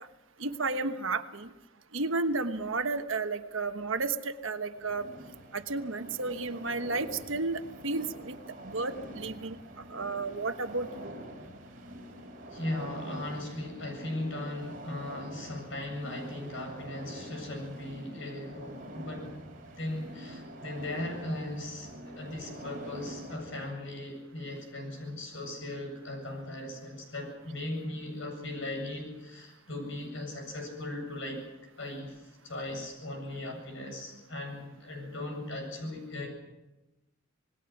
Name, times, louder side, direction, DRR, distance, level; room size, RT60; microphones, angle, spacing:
voice 1, 0.4-1.5 1.9-5.1 5.5-8.4 8.6-9.6 9.9-11.1, right 3 dB, 70° right, 8 dB, 1.3 m, -32 dB
sound 1, 4.7-23.7, right 1 dB, 45° right, 4.5 m, -46 dB
voice 2, 12.5-19.4 19.8-31.5 31.8-36.3, left 1 dB, 70° left, 3 dB, 8.0 m, -38 dB
27.5 x 19.5 x 6.0 m, 1.0 s
head